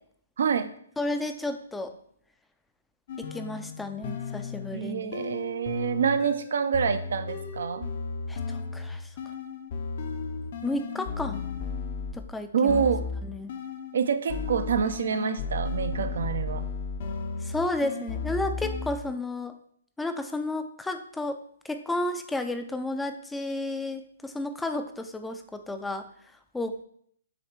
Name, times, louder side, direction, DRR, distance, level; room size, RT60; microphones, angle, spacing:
voice 1, 0.4-0.7 4.7-7.9 12.5-13.0 13.9-16.6, right 6 dB, 65° right, 11 dB, 0.6 m, -27 dB
voice 2, 1.0-1.9 3.2-5.2 8.3-9.1 10.6-11.4 12.1-12.8 13.3-13.5 17.4-19.6 20.0-21.4 21.6-26.1 26.5-26.8, left 2 dB, 5° left, 8 dB, 0.5 m, -32 dB
sound 1, 3.1-12.3 12.7-14.0 14.3-19.0, left 4 dB, 50° left, 0.8 m, -34 dB
7.7 x 3.2 x 4.6 m, 0.65 s
hypercardioid pair, 135°, 0 cm